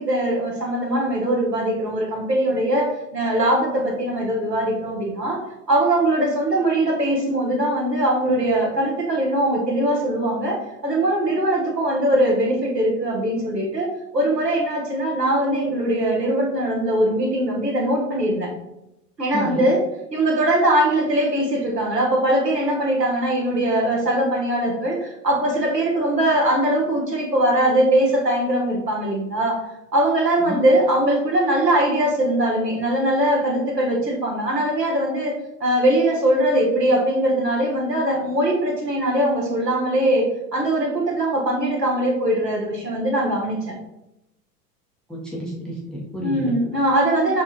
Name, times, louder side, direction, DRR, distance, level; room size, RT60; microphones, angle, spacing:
voice 1, 0.0-5.4 5.7-18.5 19.2-19.8 20.1-29.6 29.9-35.3 35.6-40.3 40.5-43.7 46.2-47.4, right 1 dB, 85° right, -1 dB, 1.1 m, -21 dB
voice 2, 19.3-19.7 30.4-30.6 45.1-46.5 47.3-47.4, equal, ahead, -5 dB, 0.5 m, -30 dB
6.3 x 2.5 x 2.7 m, 0.88 s
figure-of-eight pair, 90°, 48 cm